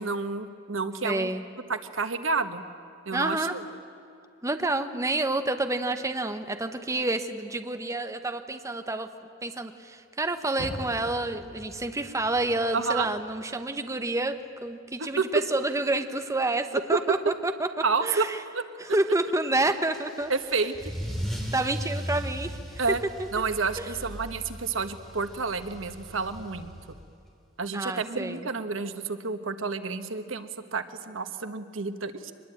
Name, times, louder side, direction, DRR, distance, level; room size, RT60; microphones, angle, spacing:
voice 1, 0.0-1.3 1.7-2.6 3.1-3.6 12.7-13.1 15.0-15.2 17.8-18.2 18.5-18.6 20.3-20.9 22.8-23.0 23.3-27.0 27.6-32.3, right 4 dB, 85° right, 9 dB, 1.3 m, -30 dB
voice 2, 1.0-1.4 3.1-3.6 4.4-9.1 9.4-17.7 18.0-18.4 18.8-20.3 21.5-23.3 23.8-24.0 27.7-28.5, right 2 dB, 15° right, 8 dB, 1.0 m, -29 dB
Car, 10.5-13.8 14.2-15.6 16.0-16.1 16.7-16.8, equal, 65° right, 7.2 m, -44 dB
Car / Engine starting / Accelerating revving vroom, 19.9-27.1, equal, ahead, 3.5 m, -37 dB
24.0 x 21.0 x 8.8 m, 2.6 s
head